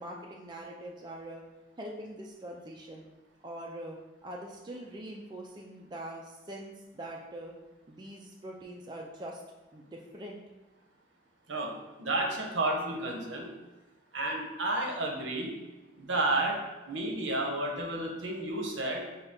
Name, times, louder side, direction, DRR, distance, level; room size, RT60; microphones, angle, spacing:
voice 1, 0.0-1.4 1.8-3.0 3.4-7.5 7.9-9.4 9.7-10.4, right 1 dB, 25° right, -1 dB, 0.3 m, -43 dB
voice 2, 12.0-13.5 14.1-15.5 16.0-16.6 16.9-19.0, right 2 dB, 70° right, 1 dB, 0.8 m, -31 dB
5.3 x 2.3 x 3.6 m, 1.1 s
head